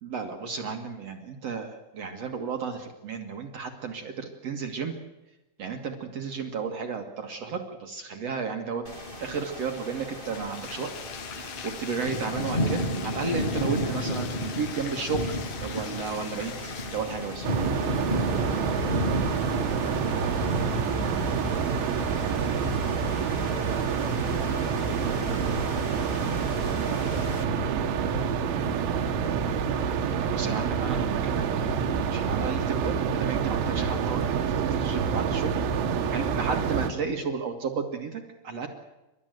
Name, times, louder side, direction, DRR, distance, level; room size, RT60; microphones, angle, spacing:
voice 1, 0.0-5.0 5.6-8.8 9.2-10.9 11.2-17.5 30.2-31.7 32.1-35.6 36.1-38.7, right 5 dB, 55° right, 4 dB, 1.9 m, -33 dB
sound 1, 8.8-27.4, equal, 45° left, 0.6 m, -34 dB
Bathtub (filling or washing), 10.2-17.5, left 8 dB, 65° left, 3.2 m, -42 dB
sound 2, 17.4-36.9, right 6 dB, 80° right, 4.0 m, -27 dB
voice 2, 17.8-28.8, left 2 dB, 80° left, -2 dB, 10.0 m, -42 dB
30.0 x 13.0 x 9.2 m, 1.0 s
omnidirectional pair, 5.5 m